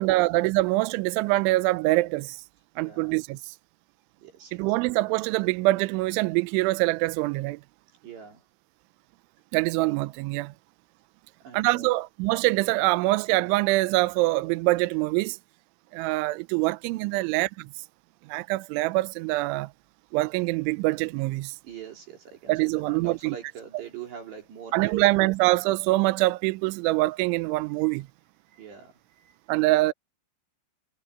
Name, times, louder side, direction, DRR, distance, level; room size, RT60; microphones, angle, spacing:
voice 1, 0.0-2.4 2.8-3.5 4.5-7.6 9.5-10.5 11.5-15.4 15.9-17.7 18.3-19.7 20.1-21.5 22.5-23.4 24.7-28.1 29.5-29.9, right 20 dB, 85° right, 2.8 m, -24 dB
voice 2, 2.8-3.1 4.2-4.7 8.0-8.4 11.4-11.9 21.6-25.1 28.5-29.4, right 7 dB, 55° right, 5.5 m, -43 dB
omnidirectional pair, 6.0 m